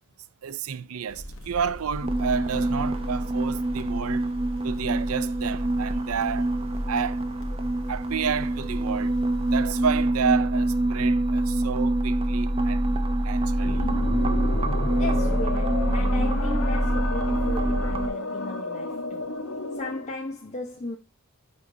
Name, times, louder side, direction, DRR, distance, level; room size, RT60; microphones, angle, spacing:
voice 1, 0.4-4.3 4.6-6.5 6.9-7.2 7.9-9.2 9.5-13.9, right 7 dB, 75° right, 0.5 m, -30 dB
sound 1, 1.1-10.0, equal, 60° left, 1.2 m, -41 dB
sound 2, 2.0-18.1, right 1 dB, 25° right, 0.8 m, -25 dB
sound 3, 13.6-20.1, left 3 dB, 85° left, 1.2 m, -32 dB
voice 2, 15.0-19.3 19.8-21.0, left 1 dB, 35° left, 1.0 m, -36 dB
10.0 x 3.7 x 3.8 m
head